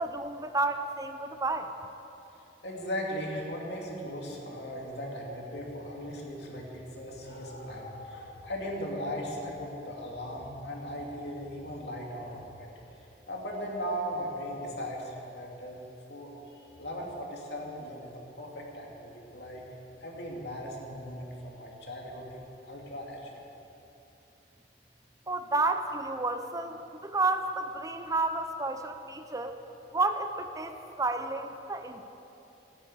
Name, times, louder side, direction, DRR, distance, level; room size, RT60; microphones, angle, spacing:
voice 1, 0.0-1.7 25.3-29.6 29.9-32.1, right 3 dB, 20° right, 8 dB, 0.6 m, -31 dB
voice 2, 2.6-15.8 16.1-16.3 16.8-18.1 18.4-19.6 20.0-23.4, equal, 70° left, -1 dB, 2.7 m, -38 dB
14.5 x 9.7 x 8.1 m, 3.0 s
head